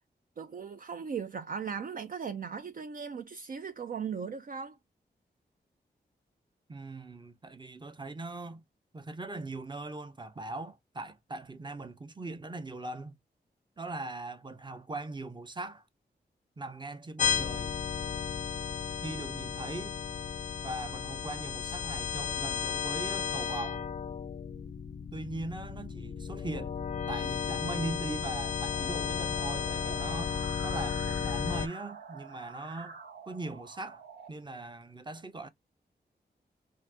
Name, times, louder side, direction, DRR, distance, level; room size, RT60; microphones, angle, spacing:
voice 1, 0.4-4.8, right 6 dB, 55° right, 0.4 m, -38 dB
voice 2, 6.7-8.6 8.9-13.2 13.8-15.8 16.6-17.8 19.0-19.9 20.6-23.9 25.1-26.8 27.1-30.4 30.6-33.0 33.3-34.0 34.3-35.5, right 2 dB, 25° right, 0.7 m, -40 dB
sound 1, 17.2-31.7, left 7 dB, 45° left, 0.4 m, -34 dB
sound 2, 28.7-34.3, right 5 dB, 85° right, 1.2 m, -47 dB
2.6 x 2.6 x 3.4 m
cardioid pair, 65°, 18 cm